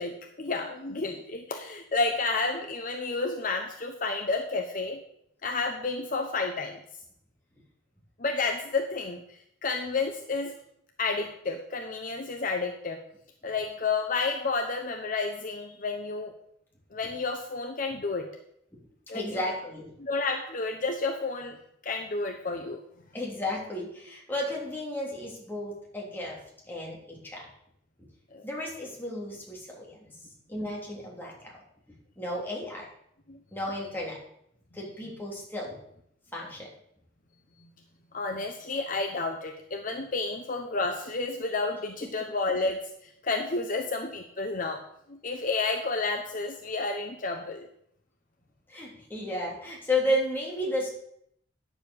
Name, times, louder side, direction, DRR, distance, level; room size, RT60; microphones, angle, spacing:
voice 1, 0.0-5.0 5.4-6.8 8.2-10.5 11.0-13.0 13.4-16.3 16.9-18.2 19.1-19.5 20.0-21.6 21.8-22.8 28.3-28.4 33.3-33.4 38.1-44.8 45.1-47.7, left 3 dB, 45° left, 4 dB, 0.9 m, -31 dB
voice 2, 19.1-19.8 23.1-26.4 26.7-27.5 28.4-30.1 30.5-31.6 32.2-32.9 33.5-34.2 34.7-35.8 36.3-36.7 48.7-50.9, left 1 dB, 10° left, -3 dB, 3.2 m, -33 dB
9.9 x 7.1 x 7.1 m, 0.72 s
head